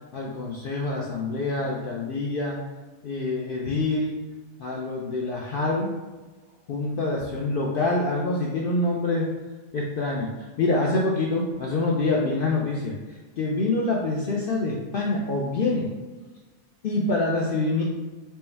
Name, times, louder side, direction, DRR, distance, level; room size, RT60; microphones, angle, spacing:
voice 1, 0.1-2.6 3.0-4.2 4.6-5.9 6.7-9.3 9.7-13.0 13.4-15.9 16.8-17.8, left 2 dB, 80° left, -3 dB, 0.5 m, -26 dB
4.5 x 2.1 x 3.3 m, 1.2 s
omnidirectional pair, 1.5 m